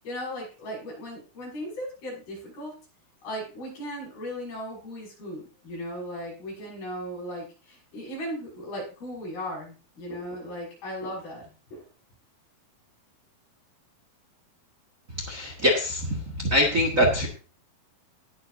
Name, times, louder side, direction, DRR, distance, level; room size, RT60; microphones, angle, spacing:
voice 1, 0.0-2.7 3.2-11.9, equal, 85° left, -3 dB, 8.1 m, -37 dB
voice 2, 15.3-17.3, left 1 dB, 30° right, 1 dB, 1.5 m, -23 dB
19.0 x 7.8 x 2.7 m, 0.36 s
omnidirectional pair, 4.2 m